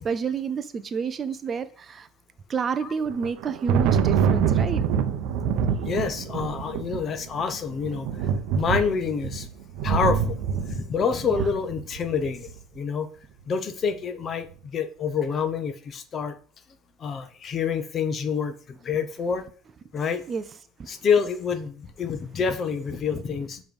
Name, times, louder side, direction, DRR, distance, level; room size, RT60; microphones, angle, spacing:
voice 1, 0.0-2.1 2.5-4.8 5.6-5.7 11.2-11.4 20.3-20.4 20.8-20.9, right 6 dB, 30° right, 0.4 m, -29 dB
Thunder, 3.1-12.5, right 7 dB, 70° right, 0.6 m, -26 dB
voice 2, 5.8-8.1 8.5-9.5 9.8-12.5 12.8-13.1 13.5-16.3 17.0-19.4 19.9-20.2 20.9-23.6, left 6 dB, 35° left, 0.7 m, -27 dB
7.0 x 3.1 x 5.2 m
cardioid pair, 135°, 0 cm